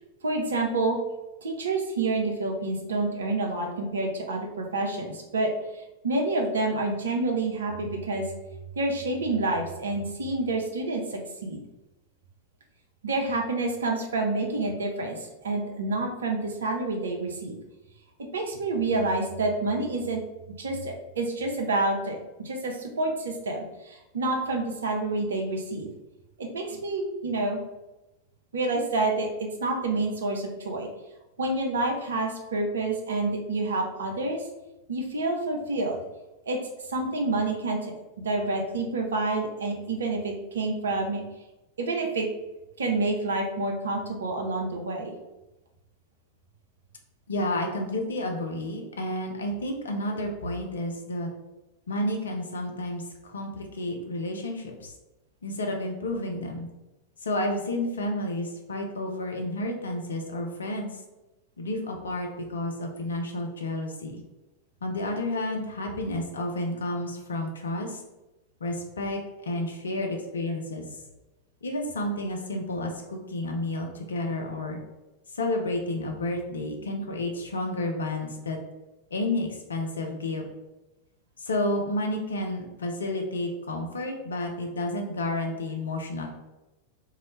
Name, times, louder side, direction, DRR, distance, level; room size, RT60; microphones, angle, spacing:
voice 1, 0.2-1.0 1.4-8.2 8.8-11.6 13.0-15.2 15.4-17.6 18.3-20.2 20.6-22.2 22.4-25.9 26.4-27.6 28.5-30.9 31.4-34.5 34.9-36.0 36.5-36.6 36.9-37.9 38.2-41.2 41.8-42.3 42.8-45.2, right 2 dB, 65° right, 2 dB, 0.4 m, -28 dB
voice 2, 47.3-51.3 51.9-54.9 55.4-56.7 57.2-61.0 61.6-64.2 64.8-68.0 68.6-69.2 69.5-71.0 71.6-74.8 75.3-78.6 79.1-80.4 81.4-86.3, left 1 dB, 70° left, 2 dB, 0.4 m, -31 dB
2.3 x 2.0 x 3.0 m, 1.0 s
figure-of-eight pair, 90°, 0 cm